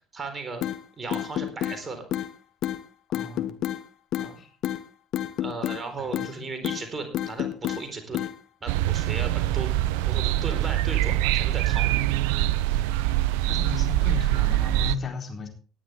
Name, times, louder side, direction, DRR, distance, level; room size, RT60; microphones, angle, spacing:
voice 1, 0.1-0.6 1.0-2.0 4.2-4.4 5.4-8.2 8.6-9.8 10.0-12.0, right 3 dB, 25° right, 6 dB, 4.2 m, -36 dB
sound 1, 0.6-0.8 1.1-1.8 2.1-2.3 2.6-2.8 3.1-3.8 4.1-4.3 4.6-4.8 5.1-5.8 6.1-6.3 6.6-6.8 7.1-7.8 8.1-8.3, left 12 dB, 50° left, 1.3 m, -28 dB
voice 2, 3.1-3.5 4.4-4.5 6.0-6.4 10.0-10.1 13.5-15.5, left 5 dB, 35° left, 2 dB, 4.0 m, -35 dB
sound 2, 8.7-15.0, right 14 dB, 65° right, 0.5 m, -24 dB
19.0 x 10.5 x 3.5 m, 0.37 s
figure-of-eight pair, 55°, 0 cm